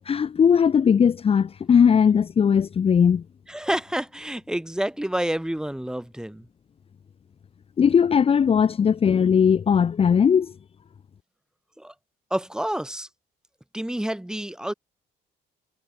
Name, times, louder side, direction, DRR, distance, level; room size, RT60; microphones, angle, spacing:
voice 1, 0.0-3.2 7.8-10.5, left 7 dB, 35° left, 1.1 m, -19 dB
voice 2, 3.5-6.5 11.8-11.9 12.3-13.1 13.7-14.7, right 1 dB, 5° right, 3.2 m, -28 dB
cardioid pair, 110°, 17 cm